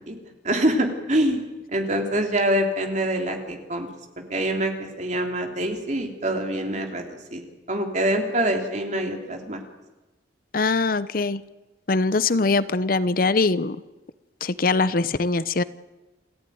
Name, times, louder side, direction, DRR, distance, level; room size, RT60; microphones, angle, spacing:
voice 1, 0.4-1.4 1.7-3.9 4.3-7.0 7.3-9.6, right 1 dB, 40° right, 3 dB, 3.3 m, -25 dB
voice 2, 10.5-11.4 11.9-13.8 14.4-15.6, left 3 dB, 50° left, 15 dB, 0.7 m, -22 dB
28.5 x 15.0 x 9.5 m, 1.1 s
head